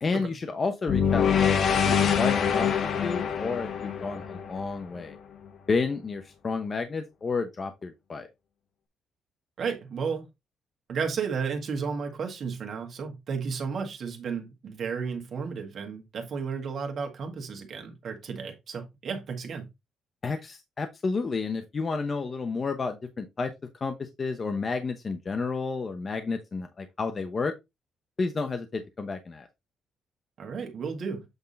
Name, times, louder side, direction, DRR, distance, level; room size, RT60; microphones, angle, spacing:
voice 1, 0.0-2.8 3.0-5.2 5.7-8.3 20.2-23.5 23.8-27.5 28.2-29.5, left 4 dB, 30° left, 0.9 m, -31 dB
sound 1, 0.9-5.1, left 7 dB, 55° left, 1.0 m, -25 dB
voice 2, 9.6-10.2 10.9-19.7 30.4-31.2, right 5 dB, 50° right, 1.7 m, -33 dB
8.1 x 3.6 x 4.0 m
cardioid pair, 135°, 0 cm